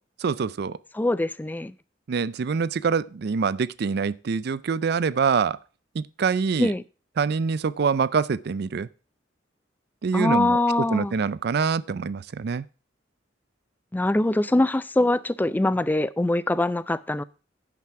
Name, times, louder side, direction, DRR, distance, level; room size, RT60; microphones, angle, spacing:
voice 1, 0.2-0.8 2.1-5.6 5.9-6.7 7.2-8.9 10.0-12.6, right 5 dB, 60° right, 0.4 m, -25 dB
voice 2, 0.9-1.7 6.6-6.8 10.1-11.1 13.9-17.2, left 2 dB, 10° left, 0.4 m, -23 dB
10.5 x 5.9 x 4.6 m
head